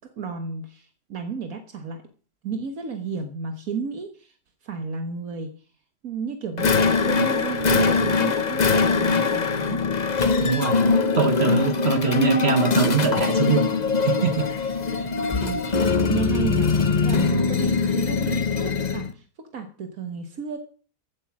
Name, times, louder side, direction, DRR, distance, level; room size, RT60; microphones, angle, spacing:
voice 1, 0.2-2.0 2.4-4.3 4.6-5.5 6.0-6.8 7.1-9.8 15.3-15.8 16.1-19.2 19.5-20.6, right 5 dB, 75° right, 6 dB, 1.7 m, -32 dB
sound 1, 6.6-19.1, left 4 dB, 35° left, 0.9 m, -22 dB
voice 2, 10.4-10.9 11.2-13.7 14.0-14.4, right 5 dB, 50° right, 8 dB, 1.3 m, -23 dB
15.0 x 8.6 x 5.9 m, 0.41 s
omnidirectional pair, 1.5 m